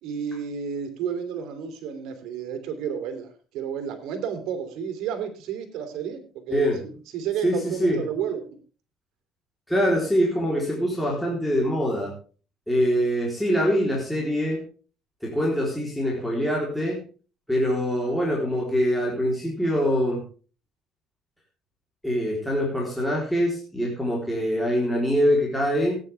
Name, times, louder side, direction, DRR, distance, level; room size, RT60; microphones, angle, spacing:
voice 1, 0.0-6.7 7.1-8.4, right 8 dB, 80° right, 7 dB, 3.2 m, -31 dB
voice 2, 6.5-6.8 7.4-8.1 9.7-12.1 12.7-14.6 15.2-17.0 17.5-20.2 22.0-26.0, equal, ahead, -3 dB, 3.9 m, -24 dB
17.0 x 9.7 x 3.5 m, 0.37 s
cardioid pair, 125°, 0 cm